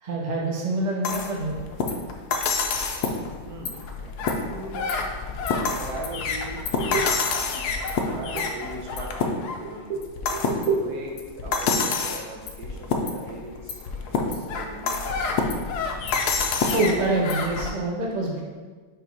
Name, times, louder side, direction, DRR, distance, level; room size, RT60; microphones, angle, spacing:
voice 1, 0.0-1.6 6.8-7.0 9.9-10.0 10.3-10.8 16.7-18.4, right 3 dB, 45° right, -2 dB, 0.5 m, -26 dB
sound 1, 1.0-17.7, left 4 dB, 70° left, 1.0 m, -27 dB
voice 2, 3.4-3.8 4.2-5.1 5.7-6.7 8.0-10.0 10.7-15.7, right 2 dB, 60° right, -1 dB, 1.2 m, -39 dB
4.6 x 4.3 x 5.2 m, 1.4 s
omnidirectional pair, 2.3 m